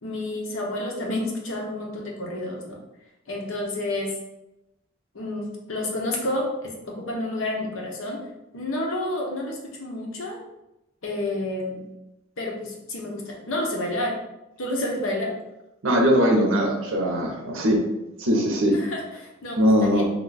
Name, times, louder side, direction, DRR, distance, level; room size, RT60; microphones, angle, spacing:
voice 1, 0.0-2.8 3.3-4.1 5.1-8.2 8.5-10.4 11.0-11.8 12.4-14.2 14.6-15.3 18.7-20.0, left 1 dB, 80° left, 0 dB, 0.8 m, -30 dB
voice 2, 15.8-17.8 18.2-18.7 19.6-20.0, equal, 75° right, 2 dB, 0.7 m, -20 dB
2.9 x 2.2 x 3.9 m, 0.93 s
head